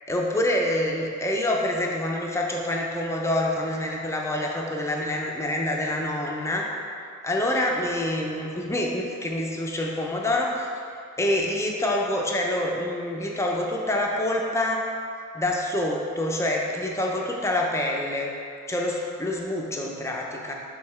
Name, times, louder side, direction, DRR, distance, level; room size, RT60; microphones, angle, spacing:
voice 1, 0.1-6.7 7.2-10.7 11.2-14.9 15.3-18.3 18.7-20.5, left 1 dB, 15° left, -1 dB, 0.6 m, -26 dB
6.7 x 3.8 x 4.3 m, 2.4 s
head